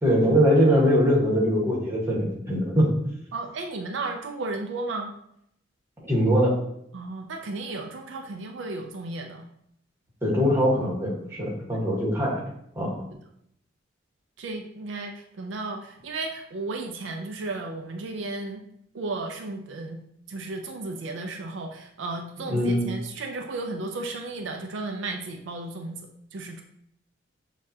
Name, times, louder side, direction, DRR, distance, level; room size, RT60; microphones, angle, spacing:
voice 1, 0.0-2.9 6.0-6.5 10.2-12.4 12.7-13.0 22.5-22.8, equal, 15° right, -5 dB, 1.2 m, -22 dB
voice 2, 3.3-5.1 6.9-9.4 11.7-11.8 14.4-18.6 18.9-20.0 20.3-26.6, right 2 dB, 70° right, 3 dB, 0.4 m, -34 dB
6.5 x 2.4 x 2.7 m, 0.73 s
head